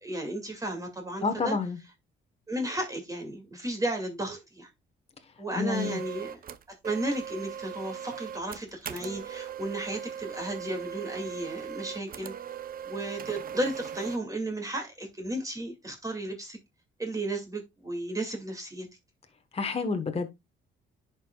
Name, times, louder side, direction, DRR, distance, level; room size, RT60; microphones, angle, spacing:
voice 1, 0.0-1.6 2.5-4.7 5.4-6.4 6.8-12.3 12.8-16.6 17.0-18.9, right 1 dB, 15° right, 2.3 m, -34 dB
voice 2, 1.2-1.8 5.6-6.0 19.5-20.3, left 4 dB, 30° left, 1.2 m, -29 dB
sound 1, 5.7-14.2, right 8 dB, 45° right, 0.7 m, -39 dB
10.5 x 4.7 x 2.3 m
cardioid pair, 90°, 20 cm